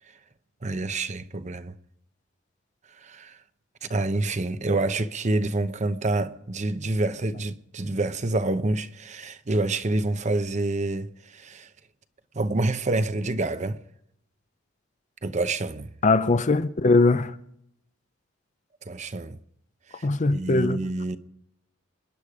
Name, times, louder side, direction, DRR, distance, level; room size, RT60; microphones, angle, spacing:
voice 1, 0.6-1.7 3.0-3.4 3.8-11.7 12.3-13.8 15.2-15.9 18.8-19.4 19.9-21.2, right 2 dB, 40° right, 0.8 m, -27 dB
voice 2, 16.0-17.4 20.0-20.8, left 3 dB, 40° left, 0.6 m, -21 dB
27.5 x 10.0 x 4.9 m
head